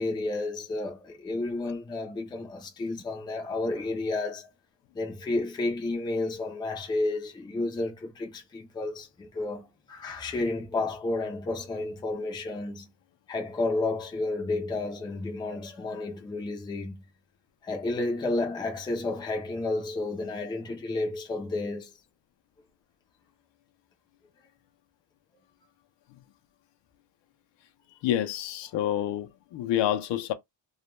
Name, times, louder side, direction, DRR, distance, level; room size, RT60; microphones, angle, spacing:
voice 1, 0.0-4.5 4.9-12.9 13.3-16.9 17.6-22.0, left 2 dB, 10° left, 0.4 m, -31 dB
voice 2, 28.0-30.3, left 11 dB, 70° left, 0.6 m, -28 dB
2.3 x 2.1 x 3.0 m
cardioid pair, 175°, 44 cm